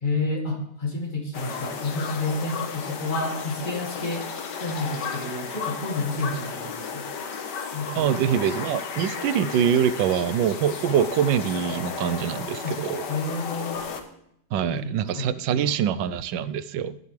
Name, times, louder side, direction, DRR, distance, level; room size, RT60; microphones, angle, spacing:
voice 1, 0.0-4.3 4.5-7.1 7.7-8.3 12.6-13.8 14.5-15.3 15.6-15.8, left 2 dB, 25° left, 1 dB, 1.9 m, -30 dB
sound 1, 1.3-14.0, left 6 dB, 70° left, 1.8 m, -34 dB
voice 2, 8.0-13.0 14.5-17.0, right 9 dB, 85° right, 15 dB, 1.3 m, -24 dB
20.0 x 7.1 x 3.3 m, 0.73 s
omnidirectional pair, 1.9 m